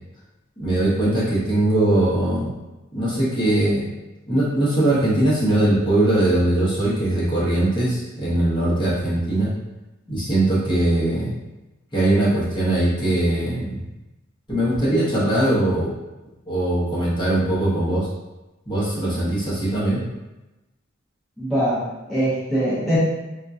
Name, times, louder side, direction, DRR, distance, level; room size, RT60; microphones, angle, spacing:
voice 1, 0.6-2.5 2.9-3.8 4.3-9.5 10.1-11.4 11.9-13.8 14.5-15.9 16.5-18.1 18.7-20.0, right 1 dB, 25° left, -9 dB, 1.0 m, -21 dB
voice 2, 21.4-23.0, right 1 dB, ahead, -13 dB, 0.8 m, -22 dB
3.6 x 2.4 x 2.7 m, 1.0 s
head